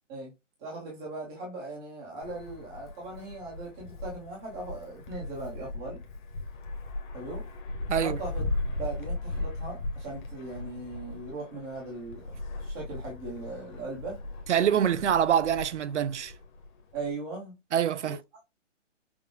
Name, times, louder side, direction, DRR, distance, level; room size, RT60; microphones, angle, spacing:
voice 1, 0.6-6.0 7.1-7.4 8.0-8.4 8.8-12.2 12.6-14.2 16.9-17.5 18.0-18.1, right 2 dB, 5° right, 0.5 m, -39 dB
Wind, 2.2-17.1, left 2 dB, 40° left, 1.1 m, -38 dB
voice 2, 14.5-16.3 17.7-18.2, right 9 dB, 70° right, 0.5 m, -25 dB
6.0 x 2.1 x 3.5 m
hypercardioid pair, 155°, 37 cm